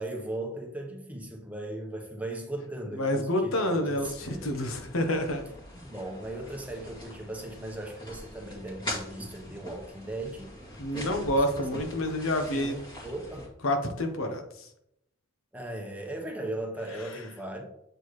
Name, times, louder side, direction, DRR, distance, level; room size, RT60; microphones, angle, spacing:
voice 1, 0.0-4.5 5.8-10.6 10.9-11.4 12.5-13.5 15.5-17.7, right 1 dB, 5° right, 2 dB, 1.0 m, -38 dB
voice 2, 3.0-5.4 10.8-12.8 13.6-14.7, left 1 dB, 90° left, 5 dB, 1.1 m, -28 dB
sound 1, 3.9-13.5, left 1 dB, 25° left, 2.2 m, -43 dB
7.8 x 4.5 x 3.2 m, 0.77 s
head